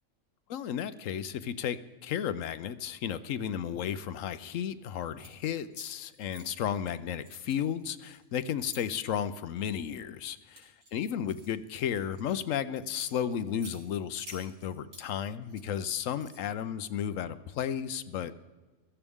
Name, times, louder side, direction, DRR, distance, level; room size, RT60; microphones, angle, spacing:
voice 1, 0.5-18.3, left 9 dB, 80° left, 13 dB, 1.0 m, -33 dB
sound 1, 5.0-5.3 5.7-6.9 7.2-8.8 9.5-9.8 10.3-12.4 12.8-13.8 14.2-15.1 15.4-16.6, right 1 dB, 90° right, 4.1 m, -52 dB
16.5 x 13.5 x 3.6 m, 1.3 s
omnidirectional pair, 1.3 m